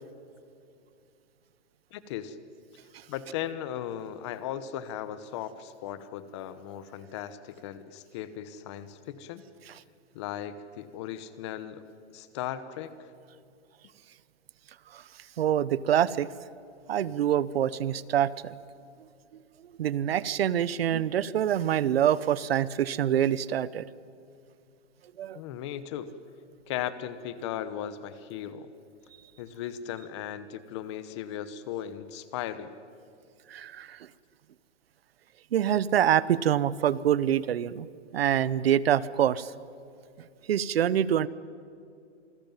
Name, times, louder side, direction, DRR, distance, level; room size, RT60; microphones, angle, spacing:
voice 1, 1.9-2.4 3.1-9.4 10.1-11.8 12.1-13.1 25.3-26.1 26.7-28.7 29.4-32.7, left 10 dB, 25° left, 14 dB, 1.0 m, -37 dB
voice 2, 15.4-16.3 16.9-18.5 19.8-23.9 25.2-25.4 33.5-34.1 35.5-37.9 38.1-39.5 40.5-41.3, right 10 dB, 55° right, 19 dB, 0.9 m, -25 dB
27.5 x 20.0 x 9.1 m, 2.4 s
hypercardioid pair, 170°, 35 cm